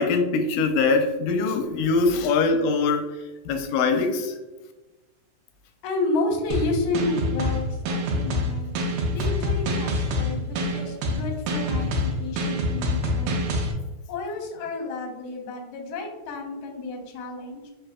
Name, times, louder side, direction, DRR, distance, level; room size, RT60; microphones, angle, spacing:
voice 1, 0.0-3.1 3.5-4.3, left 4 dB, 90° left, 2.2 m, -22 dB
voice 2, 5.8-8.7 9.1-13.4 14.1-17.7, left 2 dB, 70° left, 1.5 m, -31 dB
sound 1, 6.5-13.7, left 1 dB, 90° right, 2.3 m, -26 dB
4.9 x 3.6 x 2.2 m
omnidirectional pair, 3.7 m